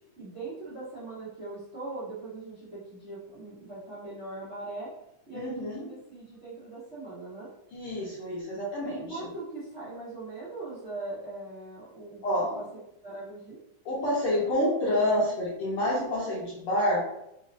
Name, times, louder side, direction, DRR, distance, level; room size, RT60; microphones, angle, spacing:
voice 1, 0.2-4.9 5.3-7.5 9.1-12.6 13.0-13.6, right 2 dB, 70° right, -11 dB, 0.6 m, -40 dB
voice 2, 5.3-5.8 7.7-9.2 12.2-12.6 13.8-17.1, left 1 dB, 70° left, -7 dB, 1.3 m, -28 dB
4.7 x 3.1 x 2.7 m, 0.83 s
omnidirectional pair, 3.6 m